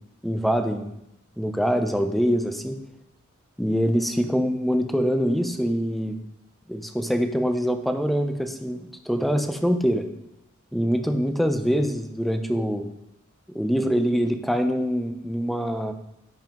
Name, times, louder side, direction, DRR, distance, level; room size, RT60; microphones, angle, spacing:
voice 1, 0.2-0.9 1.4-2.8 3.6-6.2 6.7-10.0 10.7-12.9 13.5-15.9, equal, ahead, 5 dB, 0.7 m, -24 dB
16.0 x 5.4 x 3.1 m, 0.82 s
head